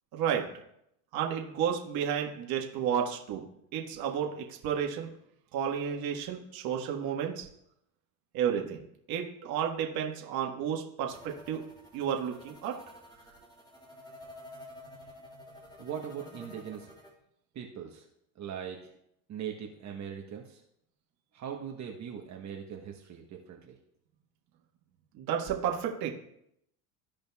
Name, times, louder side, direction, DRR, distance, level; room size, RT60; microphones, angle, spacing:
voice 1, 0.1-0.4 1.1-3.4 3.7-5.1 5.5-7.5 8.3-8.8 9.1-11.6 11.9-12.8 25.1-26.1, right 8 dB, 60° right, 0 dB, 1.5 m, -31 dB
sound 1, 11.1-17.1, left 1 dB, 10° left, 2.9 m, -50 dB
voice 2, 15.8-16.9 17.5-18.0 18.4-18.9 19.3-20.6 21.3-23.8, right 8 dB, 40° right, 1 dB, 1.1 m, -40 dB
15.0 x 5.2 x 2.3 m, 0.76 s
supercardioid pair, 95°, 41 cm